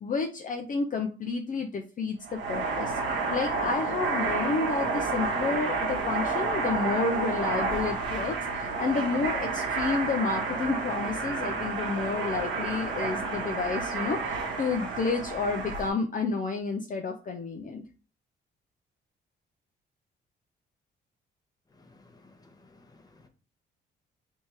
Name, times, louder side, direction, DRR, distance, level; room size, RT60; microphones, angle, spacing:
voice 1, 0.0-3.0 3.3-17.8, left 4 dB, 40° left, 0.6 m, -30 dB
sound 1, 2.2-15.9, right 4 dB, 70° right, 1.3 m, -30 dB
voice 2, 21.7-23.3, left 2 dB, 20° left, 0.9 m, -57 dB
3.5 x 2.9 x 4.5 m
cardioid pair, 90°, 20 cm